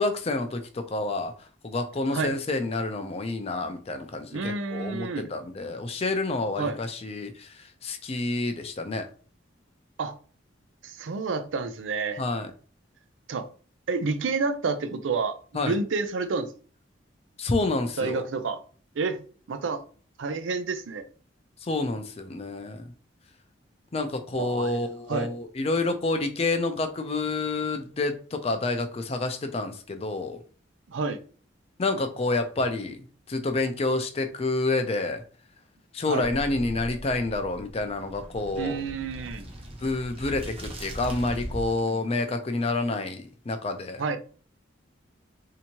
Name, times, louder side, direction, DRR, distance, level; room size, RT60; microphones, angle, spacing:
voice 1, 0.0-1.3 1.6-9.1 12.2-12.5 15.5-15.8 17.4-18.2 21.6-22.9 23.9-30.4 31.8-33.0 33.3-35.2 35.9-38.8 39.8-44.0, left 2 dB, 30° left, 0.5 m, -28 dB
voice 2, 4.3-5.3 6.6-6.8 10.0-10.1 10.8-12.2 13.3-13.5 13.9-15.4 15.6-16.5 18.0-18.6 19.0-19.2 19.5-19.8 20.2-21.0 24.4-24.8 25.1-25.3 30.9-31.2 36.1-36.2 38.6-39.5 44.0-44.2, right 4 dB, 90° right, 0.5 m, -29 dB
sound 1, 36.2-41.9, equal, 30° right, 0.8 m, -39 dB
3.4 x 2.8 x 2.9 m
head